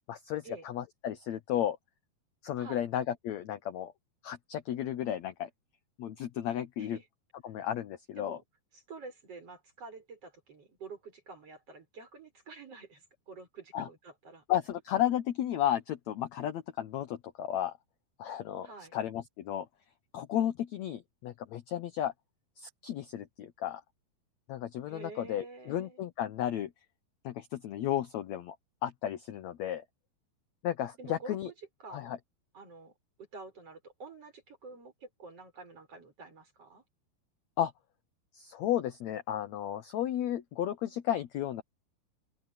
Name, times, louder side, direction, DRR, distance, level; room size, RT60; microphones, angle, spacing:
voice 1, 0.1-1.8 2.4-3.9 4.2-5.5 6.0-7.0 7.4-8.4 13.7-13.9 14.5-17.7 18.2-18.7 18.9-19.7 20.1-22.1 22.6-23.8 24.5-26.7 27.2-28.6 28.8-29.8 30.6-31.5 31.9-32.2 37.6-37.7 38.3-41.6, left 11 dB, 75° left, 1.6 m, -33 dB
voice 2, 8.7-14.4 18.6-18.9 24.9-26.0 31.0-31.5 31.8-32.1 32.5-32.9 33.2-36.8, right 3 dB, 40° right, 7.5 m, -48 dB
omnidirectional pair, 4.4 m